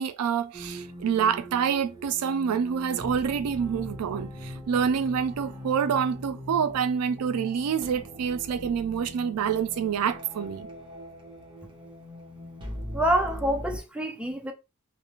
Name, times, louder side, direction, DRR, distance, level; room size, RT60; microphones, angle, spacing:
voice 1, 0.0-10.7, right 7 dB, 90° right, 0.4 m, -27 dB
sound 1, 0.5-13.8, equal, 20° right, 0.8 m, -41 dB
voice 2, 12.9-14.5, right 1 dB, 5° right, 0.3 m, -26 dB
2.4 x 2.0 x 2.9 m
head